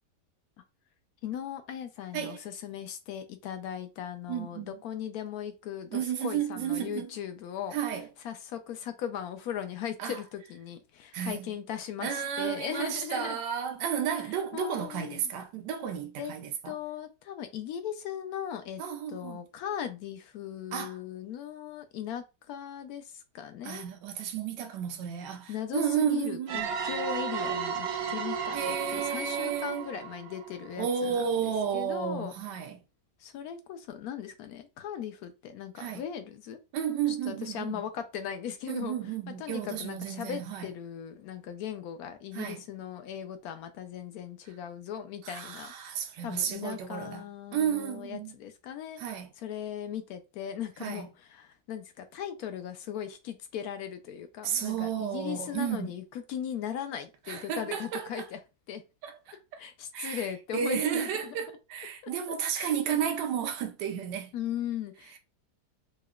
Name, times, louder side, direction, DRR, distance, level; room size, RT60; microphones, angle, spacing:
voice 1, 1.2-7.8 8.2-13.4 14.5-15.3 16.2-16.3 16.7-18.8 19.1-23.9 25.5-31.3 31.7-32.3 33.2-36.6 37.3-39.0 39.3-45.7 46.2-49.0 49.4-58.4 58.7-58.8 59.6-61.4 62.0-62.1 62.5-63.0 64.3-65.2, left 9 dB, 70° left, 1.0 m, -38 dB
voice 2, 4.3-4.7 5.9-7.1 7.7-8.1 10.0-10.2 11.1-11.5 12.0-16.8 18.8-19.4 20.7-21.0 23.6-26.8 28.5-29.9 30.8-32.8 35.8-36.0 36.7-37.8 38.7-40.7 42.3-42.6 45.2-47.2 47.5-48.4 49.0-49.3 50.8-51.1 54.4-56.0 57.3-58.3 59.0-59.4 59.9-64.3, right 8 dB, 85° right, 1.3 m, -32 dB
sound 1, 26.5-31.1, right 7 dB, 70° right, 1.0 m, -34 dB
4.8 x 2.1 x 2.4 m
omnidirectional pair, 1.8 m